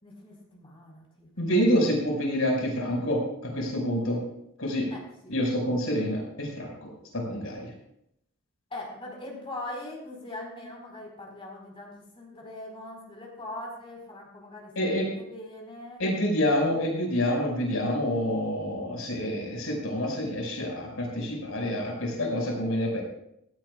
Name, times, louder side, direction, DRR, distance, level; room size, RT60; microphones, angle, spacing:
voice 1, 0.0-1.5 4.9-5.3 8.7-16.0, left 1 dB, 25° left, -1 dB, 4.4 m, -41 dB
voice 2, 1.4-4.2 4.6-4.9 5.3-6.9 7.1-7.7 14.8-15.1 16.0-23.0, equal, 85° left, -1 dB, 5.3 m, -27 dB
17.0 x 16.0 x 2.4 m, 0.77 s
head